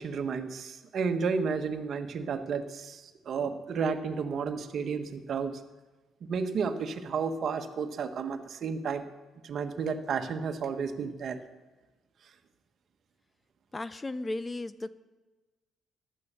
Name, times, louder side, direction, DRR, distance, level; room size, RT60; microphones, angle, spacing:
voice 1, 0.0-5.6 6.2-9.0 9.4-11.4, right 5 dB, 55° right, 7 dB, 1.4 m, -32 dB
voice 2, 13.7-14.9, left 2 dB, 20° left, 15 dB, 0.6 m, -35 dB
15.0 x 11.5 x 6.9 m, 1.2 s
cardioid pair, 90°, 0 cm